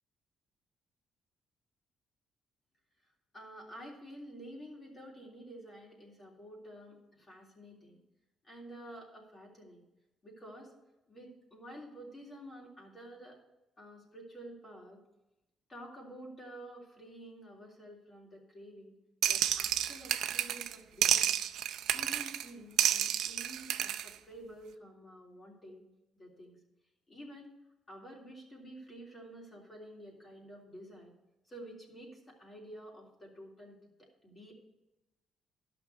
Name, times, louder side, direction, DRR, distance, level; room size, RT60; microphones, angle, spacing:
voice 1, 3.3-8.0 8.4-9.8 10.2-10.7 11.1-13.4 13.8-15.0 15.7-18.9 19.3-21.3 21.9-25.8 26.2-26.6 27.1-27.5 27.9-31.1 31.5-34.5, right 1 dB, 30° left, -3 dB, 3.4 m, -50 dB
sound 1, 19.2-20.8 21.0-22.5 22.8-24.1, right 11 dB, 85° right, 0.5 m, -30 dB
11.5 x 6.0 x 6.6 m, 0.95 s
cardioid pair, 90°, 0 cm